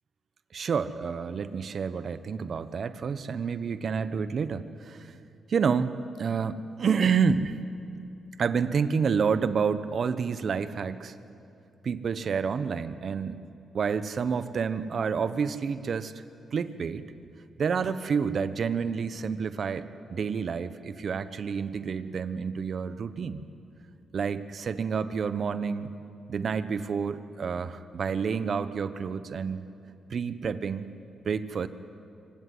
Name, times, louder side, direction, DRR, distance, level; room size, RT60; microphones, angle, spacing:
voice 1, 0.5-5.1 5.5-7.6 8.4-11.1 11.8-13.4 13.7-16.1 16.5-17.0 17.6-23.4 24.1-25.9 26.3-29.7 30.1-30.8 31.2-31.7, right 6 dB, 60° right, 13 dB, 1.0 m, -29 dB
26.0 x 16.0 x 9.7 m, 2.7 s
cardioid pair, 75°, 0 cm